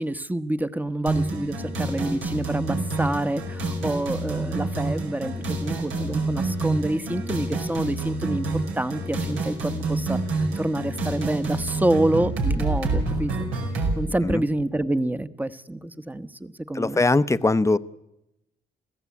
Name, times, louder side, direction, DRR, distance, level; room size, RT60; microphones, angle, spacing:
voice 1, 0.0-5.3 5.6-13.5 13.9-17.0, right 1 dB, 10° right, 1.1 m, -27 dB
sound 1, 1.1-14.0, right 2 dB, 90° right, 5.3 m, -28 dB
voice 2, 16.7-17.8, left 3 dB, 15° left, 0.8 m, -21 dB
29.5 x 15.5 x 8.4 m
cardioid pair, 90°, 20 cm